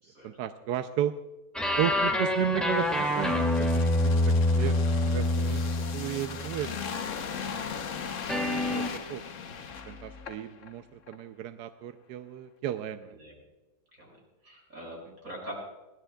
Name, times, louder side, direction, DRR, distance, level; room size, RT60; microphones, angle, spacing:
voice 1, 0.2-1.1 1.8-6.9 8.5-9.2 9.9-13.2, right 11 dB, 75° right, 10 dB, 1.0 m, -34 dB
sound 1, 1.5-6.8 8.3-9.0, left 1 dB, ahead, 2.0 m, -26 dB
sound 2, 2.4-10.7 11.1-11.2, left 6 dB, 50° left, 1.0 m, -39 dB
voice 2, 14.4-15.5, right 1 dB, 45° right, -3 dB, 6.8 m, -45 dB
22.5 x 17.0 x 2.3 m, 1.1 s
omnidirectional pair, 2.2 m